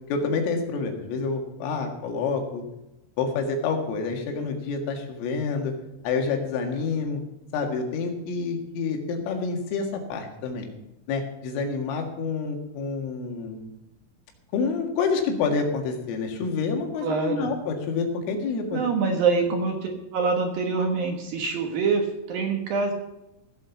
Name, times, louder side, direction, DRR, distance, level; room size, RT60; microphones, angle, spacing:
voice 1, 0.1-2.6 3.2-5.7 6.0-7.2 7.5-10.7 11.1-13.7 14.5-18.8, left 4 dB, 80° left, 3 dB, 4.4 m, -28 dB
voice 2, 17.0-17.5 18.7-22.9, right 4 dB, 65° right, 3 dB, 2.4 m, -25 dB
16.5 x 8.0 x 5.9 m, 0.93 s
omnidirectional pair, 5.8 m